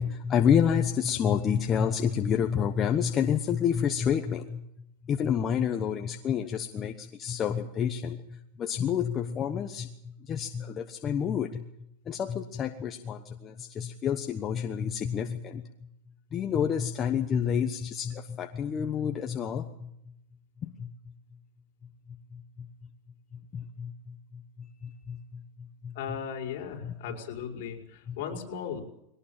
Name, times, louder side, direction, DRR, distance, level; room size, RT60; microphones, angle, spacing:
voice 1, 0.0-4.6 5.0-11.6 12.0-15.6 16.3-19.9 20.6-20.9 22.1-22.7 23.5-25.9 26.8-26.9 28.1-28.2, left 8 dB, 25° left, 5 dB, 1.1 m, -29 dB
voice 2, 25.9-28.8, left 7 dB, 60° left, 2 dB, 5.3 m, -37 dB
22.0 x 18.5 x 7.4 m, 0.79 s
supercardioid pair, 155°, 0 cm